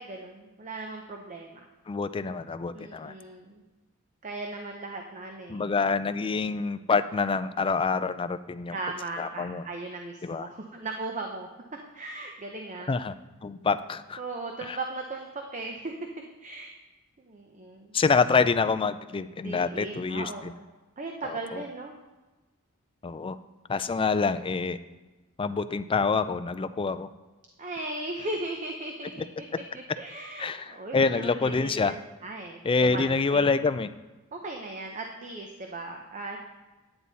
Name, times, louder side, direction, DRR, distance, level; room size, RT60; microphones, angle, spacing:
voice 1, 0.0-1.6 2.7-3.6 4.2-5.7 8.7-11.5 11.9-12.9 14.2-15.9 16.4-16.7 17.2-18.0 19.4-20.6 21.0-21.9 27.6-29.5 29.7-33.5 34.3-36.4, right 2 dB, 35° right, 2 dB, 0.8 m, -37 dB
voice 2, 1.9-3.1 5.5-8.8 9.2-9.6 10.2-10.5 12.9-14.2 14.7-14.8 17.9-20.5 21.2-21.6 23.0-23.4 23.7-24.8 25.4-27.1 30.4-32.0 32.6-33.9, left 4 dB, 25° left, 11 dB, 0.4 m, -26 dB
10.0 x 8.8 x 4.1 m, 1.2 s
head